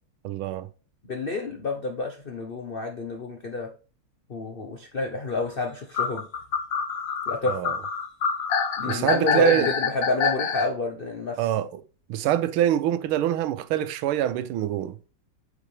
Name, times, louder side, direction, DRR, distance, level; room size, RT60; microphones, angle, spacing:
voice 1, 0.2-0.7 7.5-7.8 8.9-9.7 11.4-11.8 12.1-15.0, right 12 dB, 85° right, 1.5 m, -25 dB
voice 2, 1.0-3.7 4.3-6.3 7.3-7.6 8.8-11.5, left 3 dB, 80° left, 0.5 m, -29 dB
sound 1, 5.9-10.7, left 6 dB, 55° left, 1.1 m, -26 dB
8.2 x 4.7 x 3.3 m
omnidirectional pair, 2.3 m